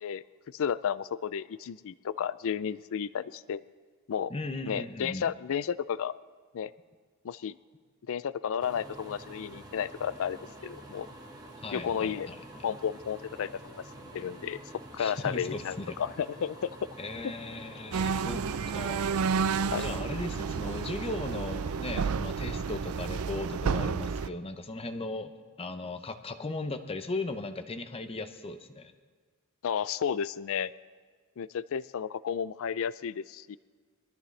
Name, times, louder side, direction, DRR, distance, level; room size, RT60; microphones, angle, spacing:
voice 1, 0.0-3.6 4.1-4.3 4.7-6.1 6.5-6.7 7.2-7.6 8.1-11.1 11.7-12.3 12.6-14.6 14.9-16.7 17.2-17.3 19.7-19.8 29.6-30.7 31.4-33.6, left 8 dB, 65° left, 17 dB, 0.4 m, -33 dB
voice 2, 4.3-5.3 11.6-12.6 15.0-16.0 17.0-18.4 18.7-19.1 19.8-25.3 25.6-28.9, left 2 dB, 25° left, 8 dB, 0.8 m, -37 dB
sound 1, 8.6-21.9, right 1 dB, 15° right, 1.3 m, -48 dB
sound 2, 17.9-24.3, right 5 dB, 70° right, 0.5 m, -31 dB
22.5 x 13.5 x 3.3 m, 1.5 s
head